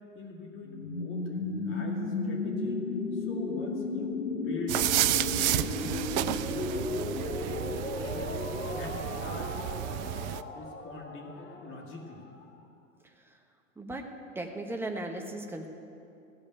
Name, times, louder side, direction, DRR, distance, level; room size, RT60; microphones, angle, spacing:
voice 1, 0.0-2.8 3.1-8.4 8.7-9.5 9.8-10.2 10.5-12.3, left 3 dB, 30° left, 0 dB, 2.1 m, -44 dB
sound 1, 0.7-12.4, left 3 dB, 90° left, 1.1 m, -35 dB
sound 2, 4.7-10.4, right 14 dB, 40° right, 0.4 m, -31 dB
voice 2, 13.8-14.1 14.3-15.7, right 2 dB, 5° right, 2 dB, 1.2 m, -36 dB
16.5 x 5.6 x 9.4 m, 2.6 s
hypercardioid pair, 100°, 38 cm